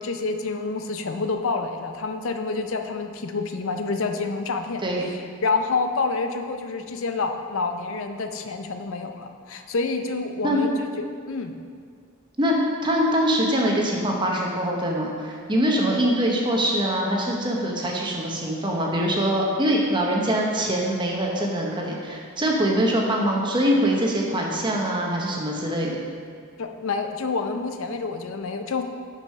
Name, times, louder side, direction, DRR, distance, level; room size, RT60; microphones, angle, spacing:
voice 1, 0.0-11.5 26.6-28.8, left 4 dB, 65° left, 6 dB, 0.5 m, -28 dB
voice 2, 12.8-26.0, equal, 20° right, -1 dB, 0.9 m, -23 dB
6.1 x 5.4 x 5.5 m, 2.1 s
head